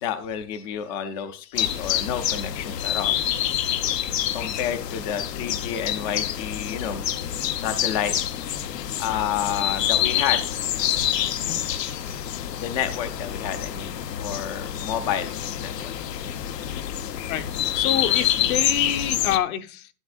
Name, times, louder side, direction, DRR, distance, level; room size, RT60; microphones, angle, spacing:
voice 1, 0.0-3.5 4.3-7.0 7.6-8.1 9.0-10.4 12.6-13.9 14.2-15.9 16.9-17.1, left 9 dB, 25° left, 9 dB, 0.4 m, -30 dB
sound 1, 1.5-19.4, left 11 dB, 80° left, 1.1 m, -27 dB
voice 2, 17.3-19.9, left 10 dB, 60° left, 7 dB, 1.1 m, -28 dB
11.5 x 8.6 x 2.5 m, 0.34 s
hypercardioid pair, 140°, 48 cm